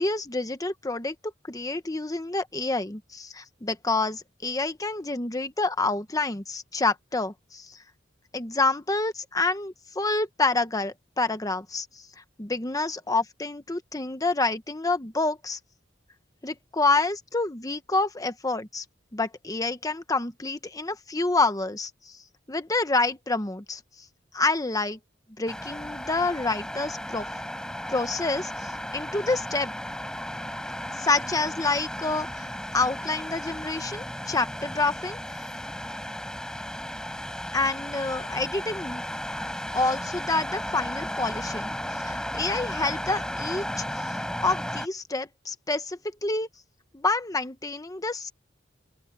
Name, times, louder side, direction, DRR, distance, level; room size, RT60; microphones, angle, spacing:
voice 1, 0.0-7.8 8.3-12.0 12.4-15.6 16.4-18.8 19.1-22.2 22.5-23.8 24.3-25.0 25.4-27.3 27.9-29.7 30.9-32.5 32.7-35.2 37.5-39.0 39.7-44.0 44.4-46.5 46.9-48.3, left 3 dB, 20° left, 1.0 m, -28 dB
sound 1, 25.5-44.9, equal, 5° left, 4.4 m, -34 dB
open air
head